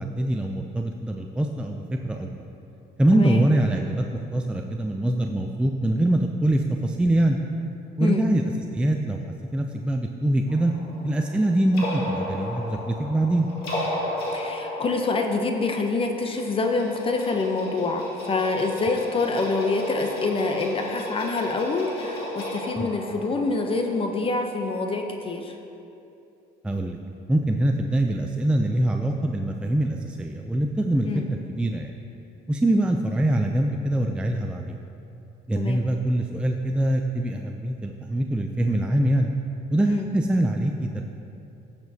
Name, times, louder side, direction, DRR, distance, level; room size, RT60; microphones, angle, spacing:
voice 1, 0.0-2.3 3.0-7.4 8.0-8.4 8.7-9.2 9.5-10.7 11.0-13.5 22.8-22.9 26.6-27.0 27.3-32.0 32.5-34.8 35.5-39.3 39.7-41.0, right 1 dB, 5° right, 2 dB, 0.4 m, -24 dB
voice 2, 3.1-3.4 8.0-8.3 14.3-25.5 29.1-29.2 31.0-31.3 35.6-35.8 39.9-40.0, left 3 dB, 35° left, 4 dB, 0.7 m, -26 dB
sound 1, 10.5-24.9, left 1 dB, 70° left, 1.9 m, -34 dB
14.0 x 6.8 x 2.8 m, 2.7 s
cardioid pair, 110°, 17 cm